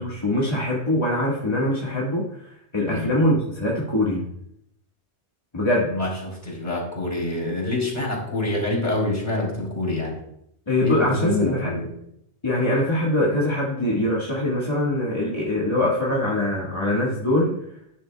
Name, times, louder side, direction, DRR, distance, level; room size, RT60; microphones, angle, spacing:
voice 1, 0.0-2.2 2.7-4.3 5.5-5.9 10.7-11.7 12.4-17.5, left 1 dB, 25° left, -6 dB, 1.6 m, -23 dB
voice 2, 5.9-10.1 10.8-11.8, left 1 dB, 40° left, -2 dB, 3.6 m, -26 dB
12.0 x 10.5 x 2.3 m, 0.74 s
omnidirectional pair, 1.2 m